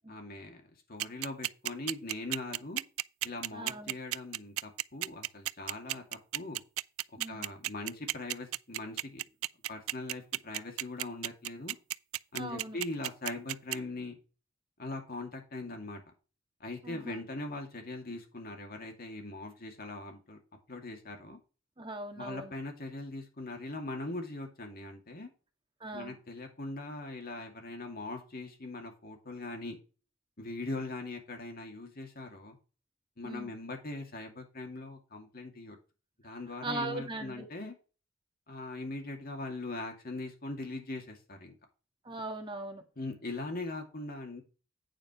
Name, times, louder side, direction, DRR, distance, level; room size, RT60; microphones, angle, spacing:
voice 1, 0.1-0.6 0.9-2.8 3.2-6.6 7.3-9.2 9.7-11.8 12.3-14.1 14.8-16.0 16.6-20.4 20.7-21.4 22.2-25.3 25.9-29.8 30.4-32.6 33.2-35.8 36.2-37.7 38.5-41.6 43.0-44.4, left 2 dB, 45° left, 3 dB, 2.4 m, -41 dB
sound 1, 1.0-13.8, right 16 dB, 85° right, 0.3 m, -33 dB
voice 2, 3.5-3.9 7.2-7.5 12.4-12.8 16.8-17.2 21.8-22.5 25.8-26.2 33.2-33.5 36.6-37.5 42.0-42.8, right 2 dB, 25° right, 4 dB, 1.6 m, -39 dB
9.0 x 5.1 x 5.0 m, 0.33 s
head